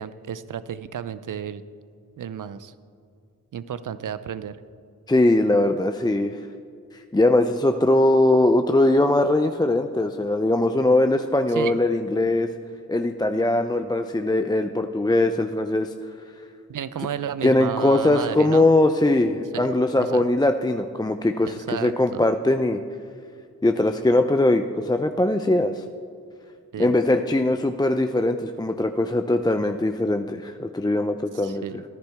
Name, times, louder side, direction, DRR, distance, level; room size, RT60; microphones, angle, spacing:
voice 1, 0.0-1.6 2.2-2.7 3.5-4.6 11.5-11.8 16.7-18.7 19.5-19.7 20.0-20.2 21.4-22.3 26.7-27.0 31.3-31.8, right 9 dB, 55° right, 15 dB, 0.6 m, -32 dB
voice 2, 5.1-6.4 7.1-12.5 12.9-15.9 17.4-22.8 23.6-25.8 26.8-31.6, left 2 dB, 10° left, 7 dB, 0.5 m, -21 dB
14.5 x 10.5 x 3.5 m, 2.4 s
supercardioid pair, 40°, 38 cm